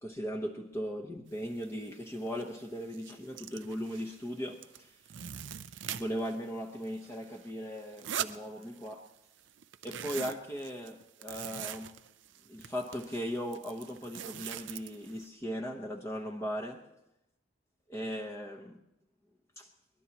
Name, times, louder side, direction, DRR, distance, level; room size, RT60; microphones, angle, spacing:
voice 1, 0.0-4.9 5.9-9.1 9.8-11.9 12.5-16.8 17.9-18.8 19.6-19.7, equal, 15° left, 1.1 m, -38 dB
sound 1, 1.6-1.7 2.1-2.4 2.8-4.3 4.6-6.4 6.7-9.1 9.4-15.3, right 10 dB, 70° right, 0.5 m, -42 dB
22.0 x 20.5 x 3.0 m
head